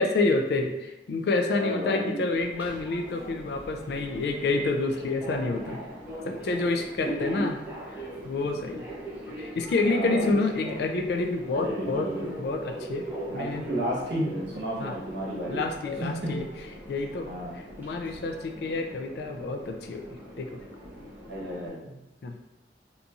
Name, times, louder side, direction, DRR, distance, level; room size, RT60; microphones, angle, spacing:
voice 1, 0.0-5.8 6.2-7.6 7.9-8.9 9.4-12.1 12.4-13.6 14.8-14.9 15.5-16.4 16.9-17.3 17.8-20.0 20.4-20.6 22.2-22.4, left 3 dB, 60° left, 5 dB, 0.3 m, -28 dB
voice 2, 1.5-2.2 7.0-7.4 9.8-10.4 10.6-10.8 11.5-12.4 13.3-15.7 16.0-16.5 17.2-17.6 21.3-21.9, equal, 70° right, -5 dB, 0.9 m, -32 dB
Subway metro underground, 2.3-21.7, equal, 10° right, 0.4 m, -41 dB
2.7 x 2.6 x 2.3 m, 0.93 s
head